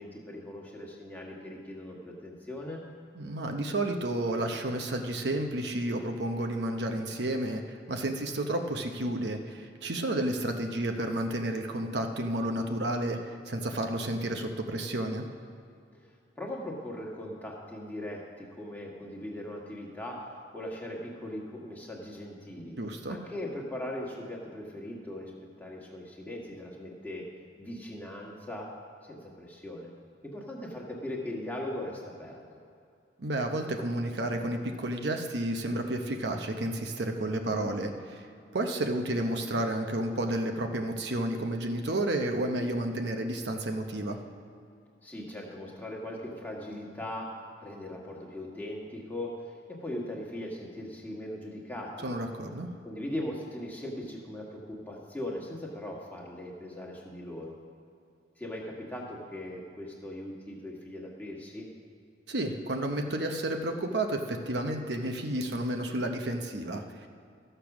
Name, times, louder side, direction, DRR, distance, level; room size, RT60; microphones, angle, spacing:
voice 1, 0.0-2.8 15.9-16.0 16.4-20.3 20.5-22.7 23.1-25.3 25.6-27.3 27.6-28.7 29.0-29.9 30.2-32.4 45.0-47.3 47.6-52.1 52.8-57.6 58.4-61.7, left 1 dB, 10° left, -3 dB, 1.5 m, -39 dB
voice 2, 3.2-15.3 22.8-23.2 33.2-38.3 38.5-44.2 52.0-52.7 62.3-67.1, right 1 dB, 70° right, 4 dB, 0.8 m, -31 dB
13.5 x 6.8 x 6.0 m, 2.4 s
head